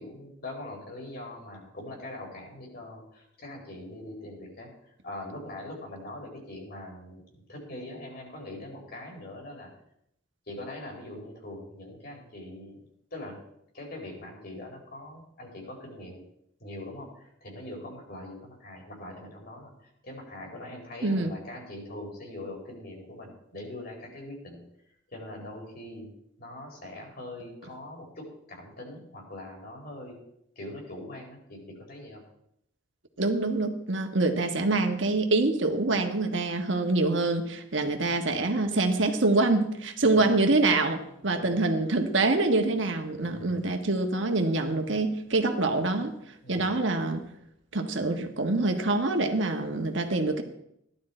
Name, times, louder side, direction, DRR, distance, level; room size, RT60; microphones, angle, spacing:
voice 1, 0.0-4.7 5.0-7.2 7.5-9.7 10.5-12.8 13.1-13.4 13.7-16.2 16.6-19.7 20.0-24.6 25.1-26.1 26.4-30.2 30.6-32.2 40.0-40.3 41.3-41.6 43.2-43.6 46.4-46.7, left 1 dB, 55° left, -1 dB, 4.4 m, -42 dB
voice 2, 33.2-46.1 46.5-47.2 47.7-50.4, right 2 dB, 70° right, 5 dB, 1.5 m, -25 dB
15.5 x 11.5 x 4.5 m, 0.77 s
head